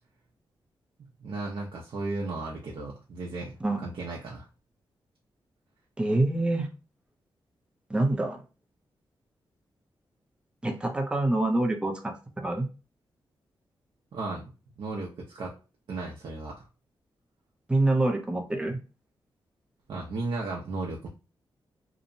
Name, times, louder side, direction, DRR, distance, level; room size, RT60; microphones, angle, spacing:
voice 1, 1.0-3.5 3.8-4.5 14.1-14.5 14.8-15.6 15.9-16.7 19.9-21.1, right 3 dB, 70° right, -2 dB, 0.6 m, -35 dB
voice 2, 6.0-6.7 7.9-8.4 10.6-12.7 17.7-18.8, right 2 dB, 10° right, 4 dB, 0.5 m, -26 dB
2.8 x 2.1 x 2.6 m, 0.32 s
wide cardioid pair, 115°, 9 cm